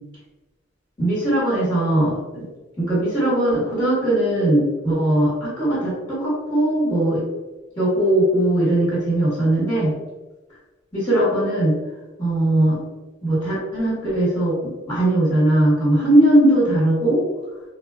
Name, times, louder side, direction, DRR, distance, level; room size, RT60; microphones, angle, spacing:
voice 1, 1.0-2.4 2.8-7.2 7.8-9.9 10.9-11.8 12.2-12.8 13.2-17.2, right 1 dB, 25° left, -11 dB, 1.5 m, -19 dB
4.0 x 2.0 x 2.4 m, 1.1 s
head